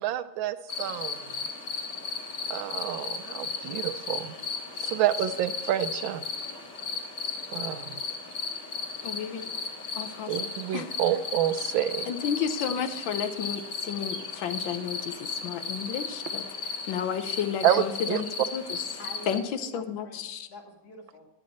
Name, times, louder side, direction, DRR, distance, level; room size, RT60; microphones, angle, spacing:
voice 1, 0.0-1.3 2.5-4.3 4.8-6.2 7.5-8.0 10.3-12.1 17.6-18.2, right 11 dB, 80° right, 1.4 m, -28 dB
sound 1, 0.7-19.4, left 5 dB, 35° left, 2.4 m, -35 dB
voice 2, 9.0-9.5 10.0-10.9 12.1-16.4 16.9-18.8 19.3-19.4 19.7-20.5, left 8 dB, 80° left, 1.5 m, -32 dB
voice 3, 19.0-21.3, left 2 dB, 55° left, 2.3 m, -46 dB
10.5 x 10.0 x 4.2 m
omnidirectional pair, 2.1 m